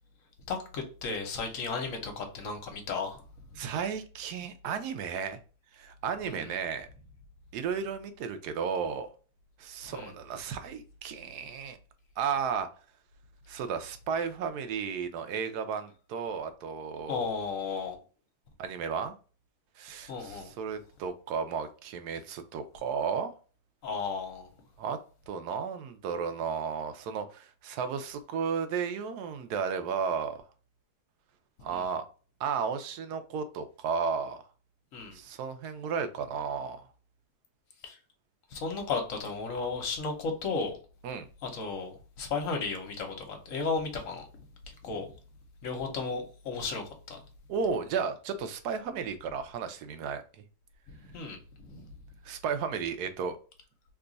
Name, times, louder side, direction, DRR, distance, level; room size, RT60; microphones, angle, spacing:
voice 1, 0.5-3.6 6.3-6.5 9.8-10.1 17.1-18.0 19.9-20.5 23.8-24.5 31.7-31.9 34.9-35.2 37.8-38.0 38.5-40.8 41.4-44.3 44.6-45.1 45.6-47.2 50.9-52.0, left 4 dB, 60° left, 1.1 m, -35 dB
voice 2, 3.6-5.4 5.7-6.9 7.5-9.1 9.6-11.8 12.2-12.7 13.5-17.3 18.6-19.1 19.8-23.3 24.8-25.0 25.3-30.4 31.6-32.0 32.4-34.4 35.1-36.8 41.0-41.3 47.5-50.2 52.2-53.4, right 6 dB, 75° right, 1.1 m, -33 dB
3.0 x 2.3 x 3.8 m
omnidirectional pair, 1.7 m